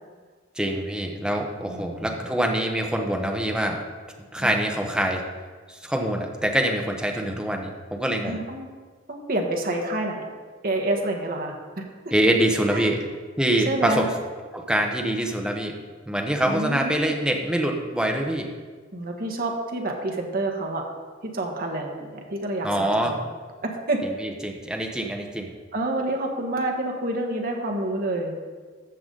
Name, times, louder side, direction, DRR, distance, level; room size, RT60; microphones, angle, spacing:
voice 1, 0.6-3.8 4.3-5.2 5.7-8.4 12.1-13.0 13.4-14.1 14.5-15.7 16.1-18.5 22.6-23.1 24.2-25.5, right 1 dB, 5° right, 1 dB, 1.0 m, -25 dB
voice 2, 1.7-2.3 4.4-4.5 8.2-8.7 9.1-10.2 10.6-12.1 12.7-12.9 13.6-14.0 16.4-17.0 18.9-20.9 21.2-23.2 23.6-24.0 25.7-28.4, right 2 dB, 45° right, 1 dB, 1.4 m, -28 dB
13.5 x 6.9 x 3.9 m, 1.5 s
head